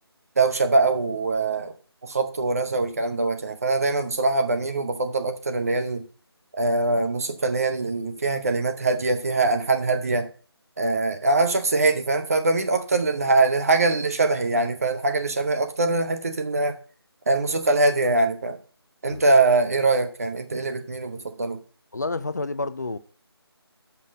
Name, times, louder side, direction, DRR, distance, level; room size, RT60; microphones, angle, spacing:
voice 1, 0.4-1.7 2.0-6.0 6.5-10.3 10.8-16.8 17.3-18.6 19.0-21.6, right 3 dB, 35° right, 0.8 m, -23 dB
voice 2, 21.9-23.0, left 3 dB, 45° left, 0.4 m, -29 dB
6.1 x 5.7 x 6.0 m
figure-of-eight pair, 160°, 14 cm